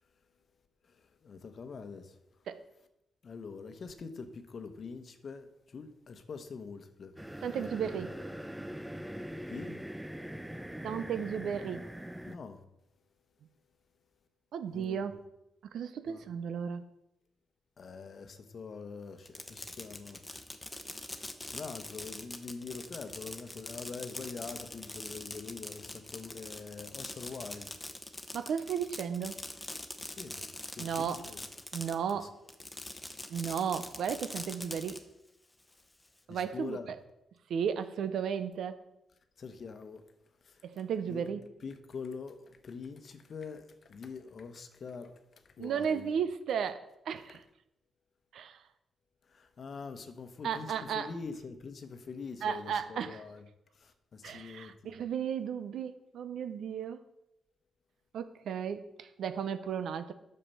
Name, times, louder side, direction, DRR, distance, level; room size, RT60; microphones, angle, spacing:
voice 1, 0.9-2.1 3.2-7.2 9.5-9.8 12.2-12.6 14.7-15.1 16.1-16.2 17.8-20.2 21.5-27.7 30.0-30.4 30.8-31.4 32.2-32.3 36.3-36.9 39.4-40.0 40.4-40.6 41.1-41.3 41.6-45.2 45.6-46.1 49.3-53.4 53.7-54.9, left 5 dB, 50° left, 1.0 m, -44 dB
sound 1, 7.2-12.4, equal, 5° right, 0.4 m, -42 dB
voice 2, 7.4-8.2 10.8-11.8 14.5-15.2 15.7-16.8 28.3-29.4 30.8-31.2 31.7-32.3 33.3-35.0 36.3-37.0 37.5-38.8 40.6-41.5 45.6-47.4 48.3-48.6 50.4-51.1 52.4-53.2 54.2-57.0 58.1-60.1, right 7 dB, 80° right, 0.6 m, -34 dB
Fireworks, 19.2-32.1 32.5-35.0, left 1 dB, 15° left, 0.9 m, -43 dB
8.9 x 6.6 x 5.5 m
cardioid pair, 100°, 0 cm